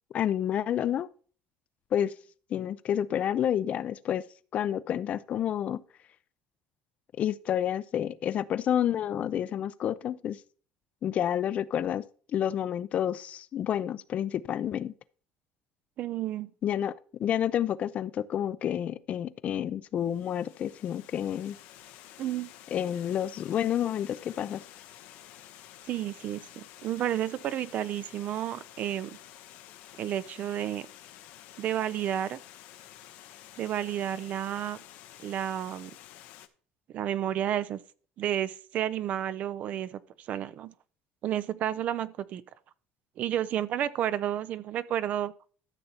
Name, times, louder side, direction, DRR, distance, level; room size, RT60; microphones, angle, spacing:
voice 1, 0.1-1.1 1.9-2.1 2.5-4.2 4.5-5.8 7.2-10.4 11.0-12.1 12.3-14.9 16.6-16.9 17.2-21.6 22.7-24.6, left 10 dB, 45° left, 0.4 m, -29 dB
voice 2, 16.0-16.5 22.2-22.5 25.9-29.2 30.0-30.9 31.6-32.4 33.6-34.8 35.2-35.9 36.9-37.8 38.2-40.7 41.2-42.4 43.2-45.3, right 11 dB, 50° right, 0.5 m, -31 dB
Water, 20.0-36.5, left 12 dB, 75° left, 0.8 m, -51 dB
13.0 x 6.7 x 2.9 m
cardioid pair, 125°, 3 cm